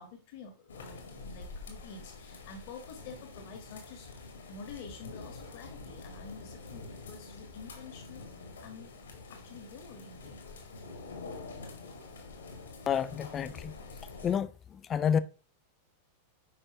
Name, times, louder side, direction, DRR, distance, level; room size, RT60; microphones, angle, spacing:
voice 1, 0.0-8.3 8.6-9.0 9.3-10.4, left 5 dB, 50° left, 1.5 m, -48 dB
sound 1, 0.7-14.4, left 3 dB, 70° left, 1.9 m, -46 dB
voice 2, 12.9-13.7 14.2-15.2, left 8 dB, 25° left, 0.5 m, -29 dB
9.7 x 5.4 x 2.9 m
figure-of-eight pair, 90°, 0 cm